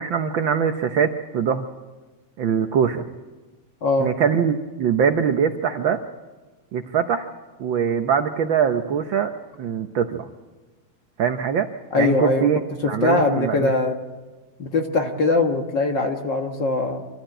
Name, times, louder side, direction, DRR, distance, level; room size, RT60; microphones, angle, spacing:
voice 1, 0.0-1.6 2.4-3.0 4.0-6.0 6.7-7.3 7.6-9.3 9.6-10.3 11.2-11.7 12.0-12.6 12.8-13.7, right 7 dB, 80° right, 7 dB, 1.0 m, -22 dB
voice 2, 3.8-4.1 11.9-12.5 12.8-14.0 14.6-17.0, left 3 dB, 45° left, 4 dB, 1.7 m, -21 dB
25.5 x 14.5 x 9.0 m, 1.3 s
omnidirectional pair, 3.4 m